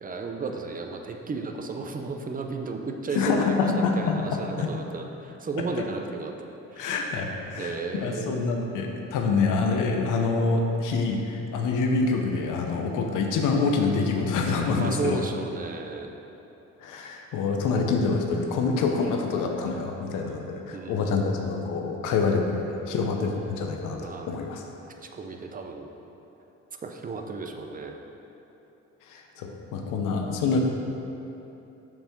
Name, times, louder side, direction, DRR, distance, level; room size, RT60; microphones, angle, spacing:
voice 1, 0.0-6.3 6.7-7.1 7.6-8.7 14.7-16.2 20.7-21.4 24.0-24.4 25.0-25.9 26.8-28.0, right 4 dB, 30° right, 4 dB, 0.6 m, -34 dB
voice 2, 3.2-4.7 6.8-15.2 16.8-24.6 29.1-30.6, left 4 dB, 90° left, 2 dB, 0.7 m, -26 dB
7.3 x 3.4 x 5.8 m, 3.0 s
cardioid pair, 90°, 30 cm